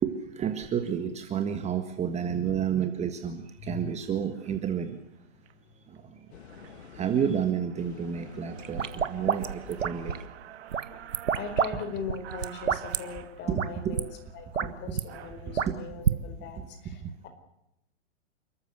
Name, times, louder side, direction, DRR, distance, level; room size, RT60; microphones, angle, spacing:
voice 1, 0.0-5.0 5.9-6.2 6.9-10.2 13.5-14.0 14.6-15.0 16.6-16.7 17.0-17.1, right 8 dB, 20° right, 8 dB, 1.6 m, -30 dB
sound 1, 3.5-3.7 4.3-4.6 5.1-5.5 5.9-6.0 6.3-15.7, right 11 dB, 60° right, 2.2 m, -49 dB
voice 2, 3.6-3.9 6.3-6.4 11.3-14.1 14.3-17.3, left 5 dB, 30° left, 7 dB, 4.8 m, -40 dB
sound 2, 6.3-10.3, left 8 dB, 60° left, 2.2 m, -49 dB
sound 3, 8.6-10.3 10.7-11.7 12.0-13.0 13.5-13.7 14.0-14.1 14.4-15.0 15.6-16.2, right 7 dB, 90° right, 1.5 m, -28 dB
29.5 x 14.0 x 8.3 m, 0.83 s
hypercardioid pair, 130°, 37 cm